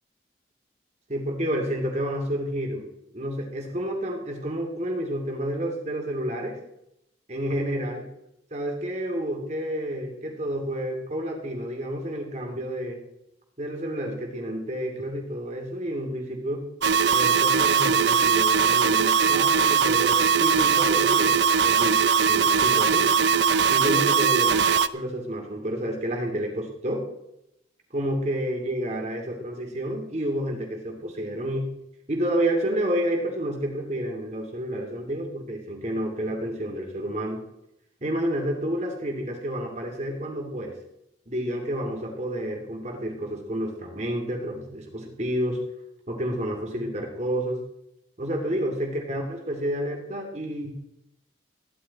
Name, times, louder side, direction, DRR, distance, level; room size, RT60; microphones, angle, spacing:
voice 1, 1.1-2.9 3.1-6.6 7.3-8.1 8.5-13.0 13.6-16.6 17.1-23.1 23.7-24.6 24.9-27.1 27.9-31.7 32.1-37.4 38.0-40.7 41.3-45.6 46.1-47.6 48.2-50.7, right 1 dB, 40° right, 3 dB, 2.7 m, -30 dB
sound 1, 16.8-24.9, right 6 dB, 70° right, 0.5 m, -20 dB
15.0 x 11.5 x 4.2 m, 0.83 s
head